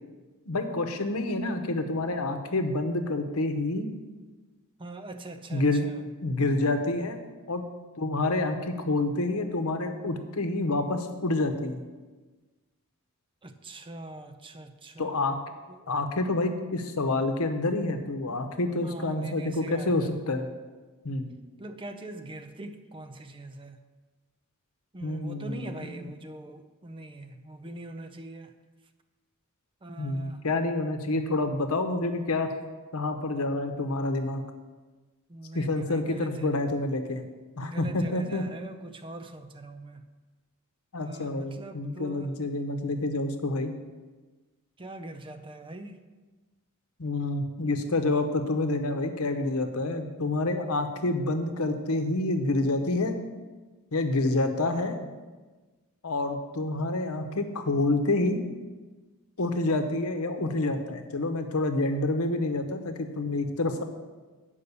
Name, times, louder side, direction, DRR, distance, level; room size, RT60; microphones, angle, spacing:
voice 1, 0.5-3.9 5.5-5.9 6.2-7.2 7.5-7.6 8.0-11.8 15.0-15.4 15.9-20.5 21.0-21.3 25.0-26.0 30.0-32.5 32.9-34.4 35.5-37.2 37.6-38.5 40.9-43.7 47.0-53.2 53.9-54.9 56.0-58.4 59.4-63.8, left 2 dB, 85° left, 7 dB, 0.9 m, -28 dB
voice 2, 4.8-6.0 13.4-15.3 15.7-15.9 18.8-20.2 21.6-23.8 24.9-28.5 29.8-30.4 35.3-36.5 37.6-40.0 41.0-42.3 44.8-46.0 54.7-55.1, right 2 dB, 25° right, 8 dB, 0.5 m, -42 dB
8.5 x 5.3 x 6.8 m, 1.3 s
head